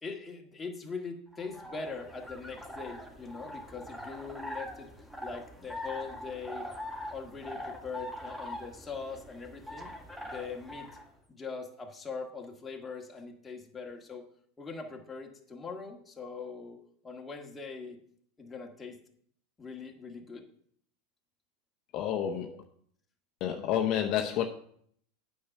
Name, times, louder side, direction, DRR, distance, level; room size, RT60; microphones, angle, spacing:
voice 1, 0.0-4.9 5.2-6.7 7.1-9.9 10.2-10.9 11.3-14.3 14.6-16.8 17.0-18.0 18.4-19.0 19.6-20.4, left 4 dB, 15° left, 1 dB, 1.8 m, -41 dB
sound 1, 1.3-11.1, left 1 dB, 5° right, 1.4 m, -43 dB
voice 2, 21.9-22.6 23.4-24.4, left 10 dB, 50° left, 3 dB, 0.8 m, -29 dB
8.6 x 5.6 x 5.8 m, 0.64 s
hypercardioid pair, 105°, 0 cm